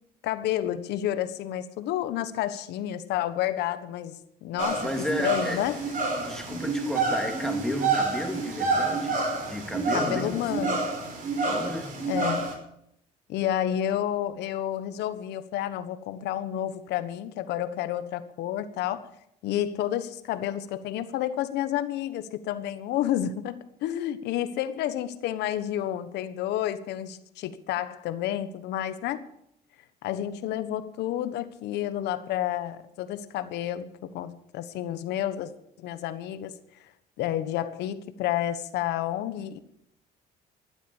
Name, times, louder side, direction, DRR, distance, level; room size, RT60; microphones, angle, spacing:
voice 1, 0.2-4.9 5.2-5.8 9.9-10.9 12.1-12.6 13.3-19.1 19.4-29.3 30.0-35.5 35.8-36.9 37.2-39.6, left 11 dB, 80° left, 1.3 m, -30 dB
sound 1, 4.6-12.5, right 3 dB, 55° right, 5.5 m, -28 dB
voice 2, 4.8-5.6 6.1-9.2 9.5-10.7 11.5-12.0, left 1 dB, 5° left, 2.9 m, -33 dB
14.5 x 11.5 x 7.2 m
cardioid pair, 110°, 17 cm